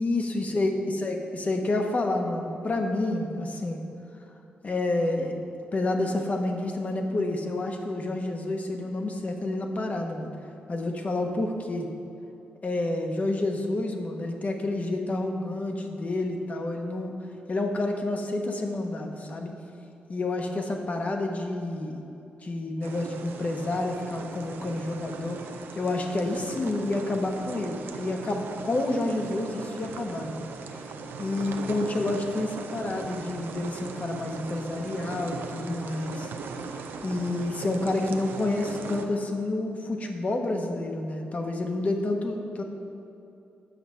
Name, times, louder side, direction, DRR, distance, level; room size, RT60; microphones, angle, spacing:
voice 1, 0.0-0.7 1.0-3.8 4.6-5.4 5.7-10.3 10.7-11.9 12.6-17.1 17.5-19.5 20.1-22.0 22.4-25.4 25.8-30.4 31.2-36.3 37.0-42.6, left 2 dB, 45° left, 3 dB, 1.1 m, -29 dB
sound 1, 22.8-39.1, right 4 dB, 85° right, 0.6 m, -39 dB
8.5 x 6.0 x 5.6 m, 2.7 s
cardioid pair, 65°, 4 cm